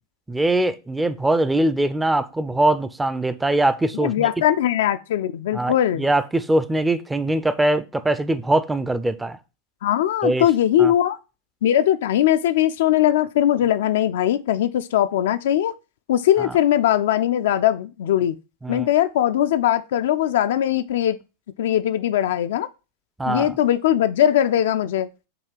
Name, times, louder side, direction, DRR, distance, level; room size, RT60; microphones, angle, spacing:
voice 1, 0.3-4.3 5.5-9.4 10.2-10.5 10.8-10.9 16.4-16.5 18.6-18.9 23.2-23.5, right 1 dB, 10° right, 0.5 m, -22 dB
voice 2, 4.0-6.1 9.8-11.2 11.6-15.8 16.1-18.4 18.7-21.2 21.6-22.7 23.3-25.1, left 11 dB, 55° left, 0.4 m, -20 dB
6.7 x 2.8 x 5.6 m
figure-of-eight pair, 90°, 0 cm